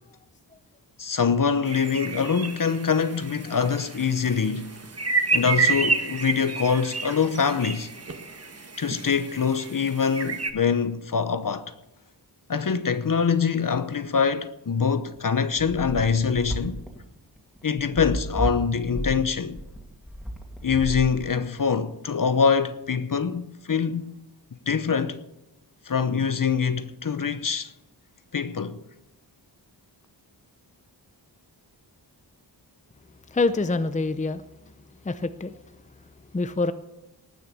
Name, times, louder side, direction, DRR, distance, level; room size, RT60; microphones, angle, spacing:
voice 1, 1.0-4.7 5.3-7.9 8.8-11.7 12.5-16.8 17.6-19.6 20.6-24.2 24.7-25.2 25.9-27.7 28.3-28.8, left 6 dB, 50° left, 0.9 m, -24 dB
sound 1, 1.7-10.5, right 4 dB, 35° right, 1.4 m, -30 dB
sound 2, 15.2-21.6, equal, ahead, 2.5 m, -32 dB
voice 2, 33.3-34.4 35.0-35.6 36.3-36.7, left 3 dB, 20° left, 0.6 m, -25 dB
19.0 x 6.5 x 8.4 m
wide cardioid pair, 100°, 42 cm